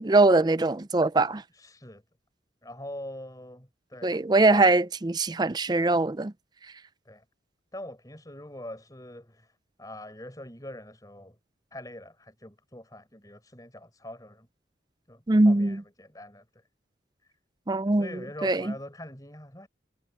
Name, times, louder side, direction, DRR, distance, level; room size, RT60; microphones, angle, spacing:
voice 1, 0.0-1.4 4.0-6.3 15.3-15.8 17.7-18.7, right 2 dB, 20° right, 0.4 m, -22 dB
voice 2, 1.5-2.0 2.6-4.2 4.5-4.7 7.0-7.2 7.7-9.5 9.8-11.4 11.7-14.5 15.1-16.4 18.0-19.7, left 1 dB, 20° left, 4.7 m, -43 dB
head